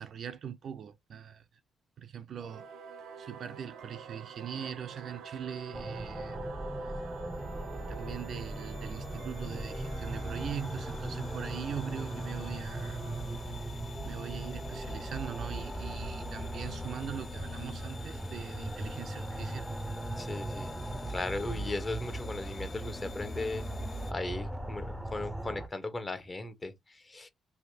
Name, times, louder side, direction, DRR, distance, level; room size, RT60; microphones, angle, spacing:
voice 1, 0.0-1.4 2.0-2.7 3.2-6.5 6.8-7.0 7.9-13.0 13.4-13.8 14.0-19.7, right 8 dB, 60° right, 0.5 m, -41 dB
Singing / Musical instrument, 2.4-15.3, right 6 dB, 90° right, 0.8 m, -49 dB
sound 1, 5.7-25.7, right 1 dB, 5° right, 0.6 m, -38 dB
sound 2, 6.3-24.1, left 5 dB, 45° left, 0.4 m, -49 dB
voice 2, 20.2-20.7 21.1-23.7 24.1-27.3, left 2 dB, 25° left, 0.9 m, -37 dB
3.2 x 2.7 x 2.7 m
cardioid pair, 90°, 0 cm